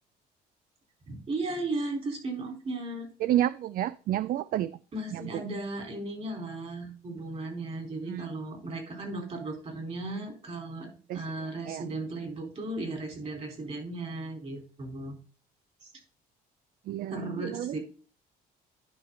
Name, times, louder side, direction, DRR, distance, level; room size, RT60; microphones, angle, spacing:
voice 1, 1.1-3.1 4.9-10.9 11.1-15.1 15.8-15.9 17.1-17.8, right 2 dB, 40° right, 2 dB, 4.2 m, -36 dB
voice 2, 3.2-4.8 5.1-5.4 8.1-8.3 11.1-11.2 11.7-11.8 16.9-17.8, right 12 dB, 55° right, 16 dB, 0.4 m, -30 dB
11.0 x 5.2 x 3.9 m, 0.39 s
cardioid pair, 110°, 17 cm